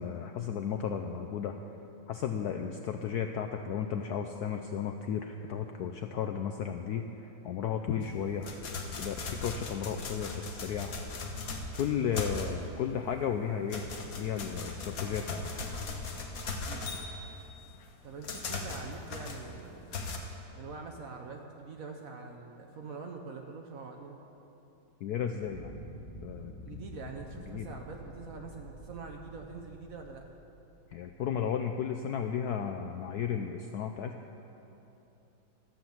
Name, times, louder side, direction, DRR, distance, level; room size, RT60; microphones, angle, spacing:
voice 1, 0.0-1.5 2.1-8.5 8.9-10.9 11.8-13.8 14.2-15.4 25.0-25.7 26.2-26.5 27.5-27.7 30.9-34.2, left 8 dB, 75° left, 5 dB, 0.9 m, -34 dB
sound 1, 8.0-12.9 13.2-20.2, left 3 dB, 50° left, 1.3 m, -38 dB
voice 2, 18.0-19.9 20.5-24.2 26.6-30.2, right 4 dB, 60° right, 3 dB, 1.0 m, -44 dB
sound 2, 25.4-31.1, equal, 15° left, 1.7 m, -48 dB
13.5 x 7.9 x 7.1 m, 3.0 s
omnidirectional pair, 2.1 m